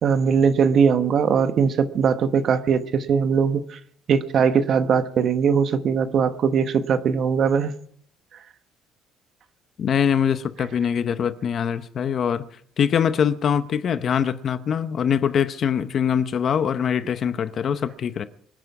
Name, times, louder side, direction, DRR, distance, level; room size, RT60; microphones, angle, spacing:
voice 1, 0.0-3.6 4.1-7.7, right 6 dB, 40° right, 1.2 m, -20 dB
voice 2, 9.8-12.5 12.8-18.2, left 8 dB, 35° left, 0.8 m, -23 dB
25.0 x 9.8 x 4.8 m
cardioid pair, 165°, 0 cm